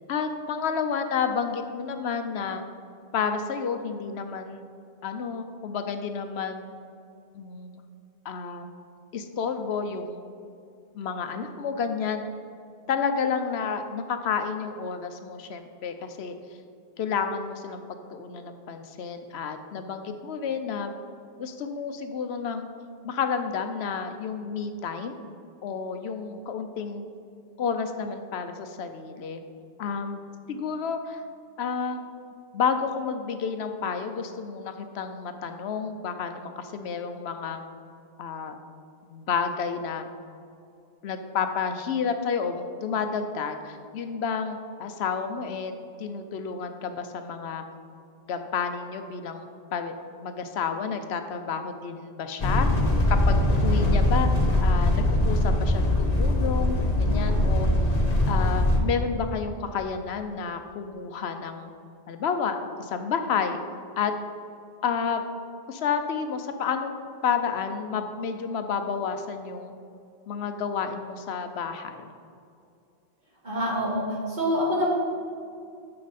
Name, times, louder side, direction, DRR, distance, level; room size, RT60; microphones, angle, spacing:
voice 1, 0.1-2.6 3.1-4.6 5.0-6.7 7.3-7.7 8.2-8.7 9.1-10.2 10.9-12.2 12.9-16.3 17.0-20.9 21.4-22.7 23.0-25.2 25.6-27.0 27.6-29.4 29.8-30.2 30.5-31.2 31.6-32.1 32.5-37.6 38.2-38.6 39.0-40.1 41.0-45.7 46.0-47.6 48.3-49.9 50.2-52.7 53.1-54.3 54.6-57.7 58.3-61.7 62.1-63.6 64.0-64.1 64.8-65.2 65.7-66.9 67.2-69.7 70.3-72.1, left 6 dB, 75° left, 7 dB, 0.9 m, -30 dB
sound 1, 52.4-58.8, left 1 dB, 40° left, 1.0 m, -22 dB
voice 2, 73.4-74.9, equal, 45° right, -5 dB, 2.1 m, -26 dB
9.7 x 6.8 x 4.1 m, 2.4 s
omnidirectional pair, 1.1 m